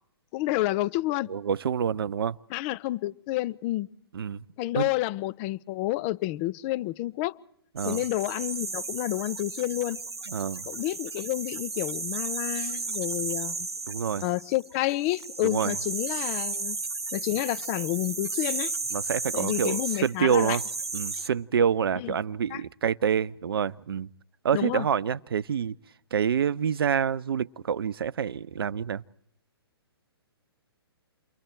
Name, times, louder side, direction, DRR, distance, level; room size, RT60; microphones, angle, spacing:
voice 1, 0.3-1.3 2.5-3.9 4.6-7.4 7.8-10.0 10.7-13.7 14.2-16.8 17.1-18.7 19.3-20.6 21.1-21.2 22.0-22.1 22.5-22.6 24.5-24.9, left 17 dB, 30° left, 0.8 m, -29 dB
voice 2, 1.3-2.4 4.1-4.4 4.7-4.9 7.8-8.0 10.3-10.7 13.9-14.2 15.4-15.8 18.9-20.6 20.9-24.1 24.4-25.8 26.1-29.0, right 7 dB, 65° right, 0.8 m, -27 dB
sound 1, 7.8-21.3, right 3 dB, 90° right, 1.1 m, -34 dB
29.5 x 22.5 x 4.5 m
figure-of-eight pair, 130°, 13 cm